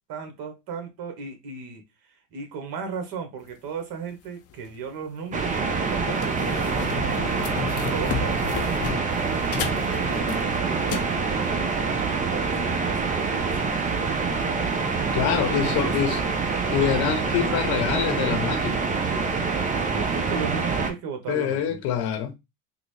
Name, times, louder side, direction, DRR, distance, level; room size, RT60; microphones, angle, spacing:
voice 1, 0.1-7.5 7.9-8.8 9.5-13.9 15.5-16.2 19.1-21.8, right 6 dB, 50° right, 1.3 m, -36 dB
sound 1, 4.5-4.7 5.3-5.4 5.7-11.1, left 6 dB, 30° left, 0.6 m, -33 dB
sound 2, 5.3-20.9, right 4 dB, 15° right, 0.5 m, -26 dB
voice 2, 15.1-16.2 16.7-18.9 21.3-22.3, left 9 dB, 55° left, 0.9 m, -25 dB
3.7 x 2.1 x 3.2 m
supercardioid pair, 100°, 47 cm